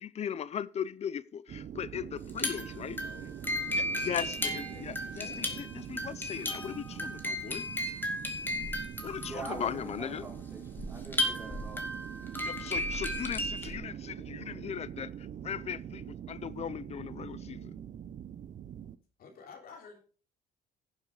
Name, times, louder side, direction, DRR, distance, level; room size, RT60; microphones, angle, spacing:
voice 1, 0.0-3.0 3.7-7.7 9.0-10.3 12.4-17.7, left 8 dB, 40° left, 0.5 m, -38 dB
sound 1, 1.5-19.0, right 9 dB, 50° right, 0.7 m, -44 dB
sound 2, 2.2-13.8, left 1 dB, 10° left, 2.4 m, -35 dB
voice 2, 3.0-3.4 3.7-5.6 9.2-9.3 19.2-20.0, left 5 dB, 60° left, 3.1 m, -52 dB
voice 3, 9.2-11.8, right 3 dB, 15° right, 4.3 m, -44 dB
11.5 x 7.2 x 5.0 m
cardioid pair, 110°, 17 cm